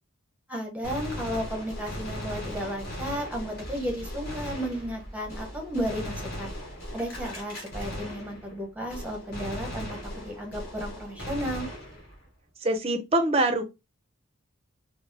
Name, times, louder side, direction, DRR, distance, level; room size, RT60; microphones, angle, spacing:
voice 1, 0.5-6.5 6.9-11.7, equal, 5° right, 0.9 m, -33 dB
Gunshot gunfire, 0.8-8.6 8.9-12.3, equal, 50° left, 1.4 m, -38 dB
voice 2, 12.6-13.6, right 2 dB, 30° right, 0.5 m, -24 dB
3.9 x 2.0 x 2.7 m
head